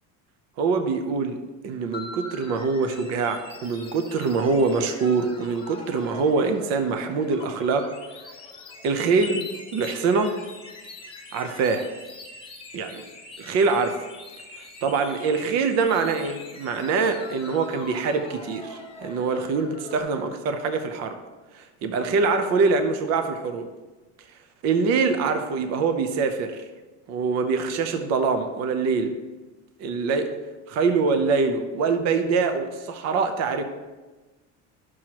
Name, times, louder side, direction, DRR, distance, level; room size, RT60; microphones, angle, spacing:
voice 1, 0.6-1.4 1.6-7.9 8.8-10.3 11.3-11.9 12.7-13.0 13.4-14.0 14.6-21.2 21.5-23.7 24.6-26.6 27.1-29.2 29.8-30.3 30.7-33.6, right 4 dB, 50° right, 7 dB, 0.7 m, -24 dB
sound 1, 1.9-20.0, left 3 dB, 15° left, 1.2 m, -42 dB
11.5 x 6.3 x 3.0 m, 1.2 s
cardioid pair, 155°, 34 cm